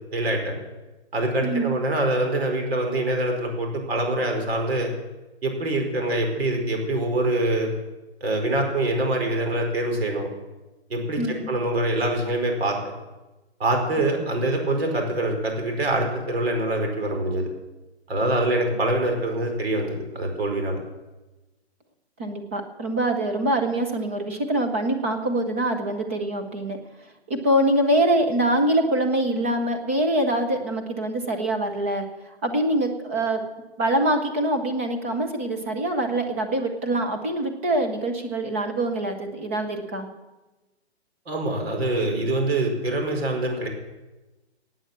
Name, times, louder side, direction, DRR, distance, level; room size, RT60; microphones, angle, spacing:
voice 1, 0.1-0.6 1.1-4.9 5.4-7.7 8.2-10.3 10.9-12.8 13.6-17.5 18.1-20.8 41.3-43.7, right 1 dB, 65° right, 3 dB, 4.8 m, -24 dB
voice 2, 1.4-1.7 11.2-11.5 22.2-26.8 27.3-32.0 32.4-33.4 33.8-40.1, right 1 dB, 10° right, 4 dB, 0.7 m, -24 dB
16.5 x 9.2 x 7.5 m, 1.1 s
hypercardioid pair, 175°, 33 cm